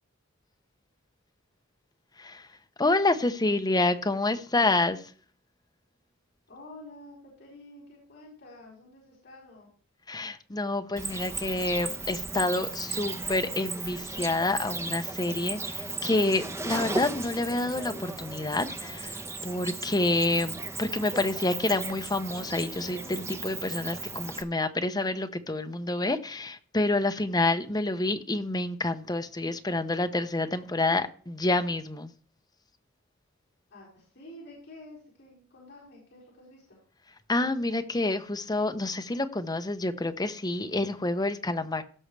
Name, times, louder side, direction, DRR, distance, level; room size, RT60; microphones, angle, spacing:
voice 1, 2.8-5.0 10.1-32.1 37.3-41.8, left 2 dB, 20° left, 0.8 m, -28 dB
voice 2, 6.5-9.7 33.7-36.8, left 1 dB, 55° left, 4.8 m, -49 dB
Cricket, 11.0-24.4, right 3 dB, 15° right, 0.7 m, -36 dB
16.5 x 6.3 x 3.3 m
head